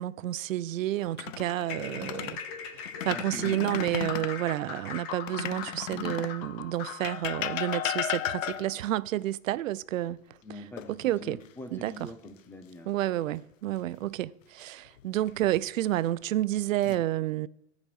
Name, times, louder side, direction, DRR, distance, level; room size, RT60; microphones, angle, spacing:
voice 1, 0.0-2.4 2.8-10.2 10.5-10.6 10.9-11.4 11.7-12.1 12.9-17.5, right 14 dB, 80° right, 0.6 m, -30 dB
sound 1, 1.0-2.4 2.9-4.4 5.3-6.4 7.0-8.9 10.8-11.5 11.9-12.1 15.0-15.6 16.3-17.0, left 11 dB, 80° left, 0.8 m, -35 dB
sound 2, 1.6-8.1, left 7 dB, 35° left, 1.3 m, -40 dB
voice 2, 3.1-3.7 10.4-10.9 11.2-12.9 16.9-17.0, left 1 dB, 5° left, 0.4 m, -43 dB
14.0 x 5.2 x 6.8 m
hypercardioid pair, 150°, 39 cm